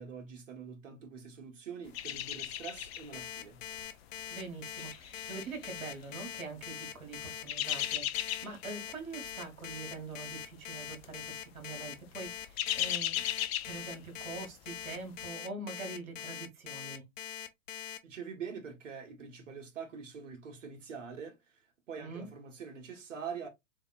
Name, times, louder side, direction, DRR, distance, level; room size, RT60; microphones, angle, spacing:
voice 1, 0.0-3.6 18.0-23.5, right 6 dB, 65° right, 1.5 m, -44 dB
sound 1, 1.9-3.2 3.6-3.8 4.5-6.2 7.2-8.7 9.0-9.3 9.6-9.8 10.7-11.1 11.4-11.6 12.1-14.4 14.7-14.8, left 12 dB, 50° left, 0.6 m, -36 dB
Alarm, 3.1-18.0, left 10 dB, 65° left, 0.9 m, -42 dB
voice 2, 4.3-13.3 13.6-17.0 22.0-22.3, right 3 dB, 85° right, 1.5 m, -44 dB
4.1 x 3.4 x 2.3 m
hypercardioid pair, 115°, 41 cm